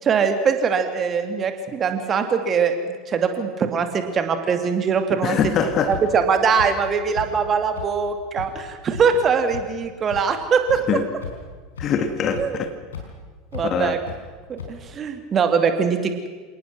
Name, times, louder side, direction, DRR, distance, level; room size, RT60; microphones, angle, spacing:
voice 1, 0.0-5.4 5.9-10.8 12.4-12.6 13.5-14.0 14.5-16.3, right 6 dB, 30° right, 2.5 m, -22 dB
voice 2, 5.2-5.9 10.9-11.0 11.8-12.7 13.6-14.0, left 6 dB, 35° left, 2.0 m, -23 dB
sound 1, 5.4-5.5 5.9-6.0 6.6-6.7 7.1-7.3 7.8-7.9 8.4-8.5 8.9-9.0 9.5-9.6 10.1-10.2 10.7-10.8 11.2-11.5 11.8-11.9 12.3-12.4 12.9-13.0 13.5-13.6 14.1-14.2 14.6-14.7, left 7 dB, 70° left, 4.7 m, -33 dB
28.0 x 18.5 x 6.2 m
figure-of-eight pair, 75°, 0 cm